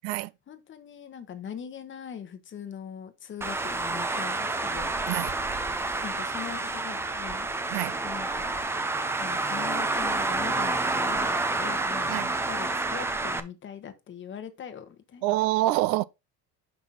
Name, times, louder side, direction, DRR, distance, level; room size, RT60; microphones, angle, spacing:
voice 1, 0.5-4.9 6.0-7.5 8.0-8.6 9.2-15.3, left 8 dB, 30° left, 1.0 m, -41 dB
Traffic noise roadway noise, 3.4-13.4, right 2 dB, 5° right, 0.3 m, -29 dB
voice 2, 15.2-16.0, right 17 dB, 90° right, 0.5 m, -26 dB
6.0 x 5.5 x 4.0 m
cardioid pair, 140°, 37 cm